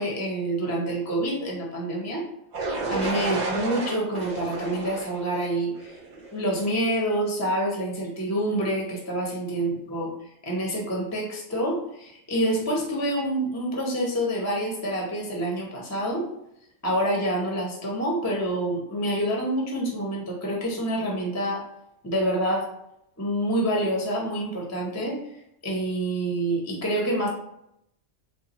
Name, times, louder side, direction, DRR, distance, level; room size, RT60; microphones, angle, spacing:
voice 1, 0.0-2.2 2.9-6.0 6.3-10.1 10.4-16.3 16.8-21.6 22.0-22.7 23.2-25.2 25.6-27.3, right 1 dB, 15° left, -1 dB, 0.6 m, -27 dB
sound 1, 2.5-6.4, right 3 dB, 50° right, 0.5 m, -31 dB
3.3 x 2.3 x 4.0 m, 0.78 s
omnidirectional pair, 1.4 m